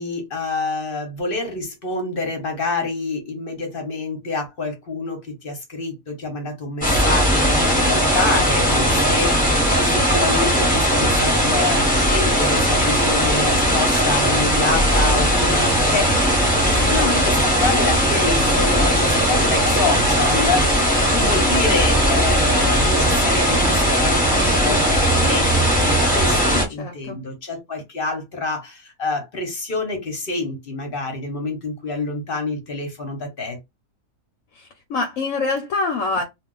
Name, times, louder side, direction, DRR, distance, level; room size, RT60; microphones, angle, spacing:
voice 1, 0.0-16.4 16.7-33.6, left 3 dB, 45° left, 0.9 m, -27 dB
sound 1, 6.8-26.6, equal, 5° left, 0.8 m, -18 dB
voice 2, 26.5-27.2 34.9-36.2, left 3 dB, 70° left, 0.9 m, -25 dB
2.4 x 2.3 x 3.8 m
omnidirectional pair, 1.6 m